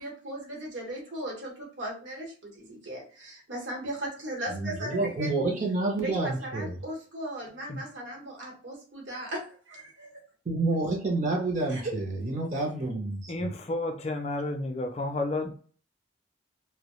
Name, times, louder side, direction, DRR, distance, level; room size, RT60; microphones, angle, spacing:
voice 1, 0.0-5.3 6.0-10.2 11.7-11.8, right 1 dB, 75° right, 0.9 m, -37 dB
voice 2, 4.5-6.8 10.5-13.3, right 2 dB, 40° right, 0.5 m, -29 dB
voice 3, 13.3-15.5, left 2 dB, 35° left, 0.4 m, -31 dB
2.2 x 2.0 x 2.9 m
head